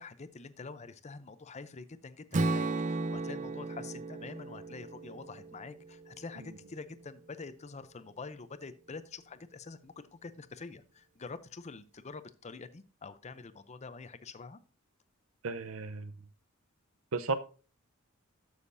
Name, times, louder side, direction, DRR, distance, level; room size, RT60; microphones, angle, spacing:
voice 1, 0.0-14.6, left 4 dB, 35° left, 13 dB, 0.6 m, -46 dB
Strum, 2.3-6.5, right 2 dB, 35° right, 0.5 m, -35 dB
voice 2, 15.4-16.1 17.1-17.3, right 4 dB, 75° right, 12 dB, 0.7 m, -34 dB
12.5 x 6.5 x 2.6 m, 0.36 s
head